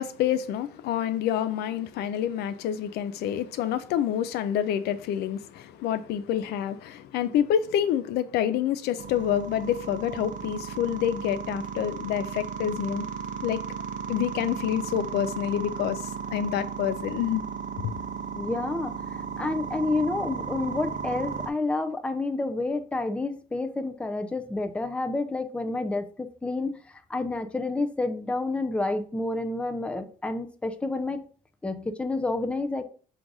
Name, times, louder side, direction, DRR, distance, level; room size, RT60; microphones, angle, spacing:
voice 1, 0.0-13.1 13.4-13.6 14.1-17.4 17.8-17.9, left 10 dB, 75° left, 0.4 m, -27 dB
sound 1, 9.0-21.5, right 7 dB, 50° right, 0.6 m, -35 dB
voice 2, 18.4-31.3 31.6-32.8, left 2 dB, 5° left, 0.4 m, -29 dB
3.8 x 2.5 x 4.7 m
cardioid pair, 110°, 17 cm